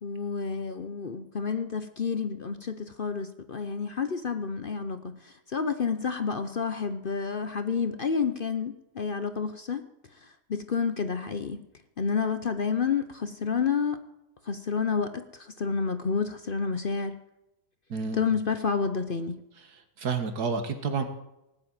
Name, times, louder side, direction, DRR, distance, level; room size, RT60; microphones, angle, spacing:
voice 1, 0.0-9.8 10.2-11.6 12.0-14.0 14.4-17.2 18.1-19.4, left 5 dB, 45° left, 9 dB, 0.8 m, -30 dB
voice 2, 17.9-18.3 20.0-21.0, right 5 dB, 80° right, 7 dB, 2.1 m, -29 dB
18.5 x 7.7 x 9.0 m, 0.92 s
omnidirectional pair, 1.7 m